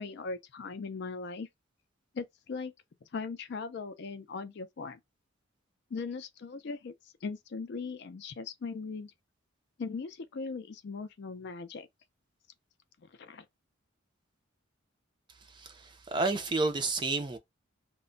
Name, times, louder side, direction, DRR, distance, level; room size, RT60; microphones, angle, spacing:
voice 1, 0.0-1.5 2.1-2.7 3.1-5.0 5.9-6.9 7.2-9.1 9.8-11.9 13.1-13.5, left 4 dB, 55° left, 0.4 m, -39 dB
voice 2, 15.5-17.4, right 3 dB, 20° right, 0.4 m, -31 dB
2.2 x 2.1 x 3.7 m
head